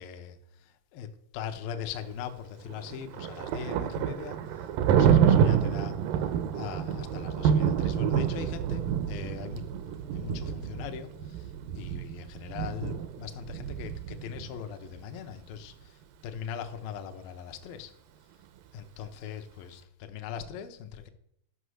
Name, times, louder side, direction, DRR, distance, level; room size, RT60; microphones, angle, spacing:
voice 1, 0.0-6.0 6.5-11.5 11.8-15.9 16.2-17.9 18.7-21.1, left 8 dB, 75° left, 7 dB, 2.4 m, -41 dB
Thunder, 2.7-14.5, right 8 dB, 75° right, 2.3 m, -27 dB
11.5 x 5.9 x 6.3 m, 0.72 s
omnidirectional pair, 4.5 m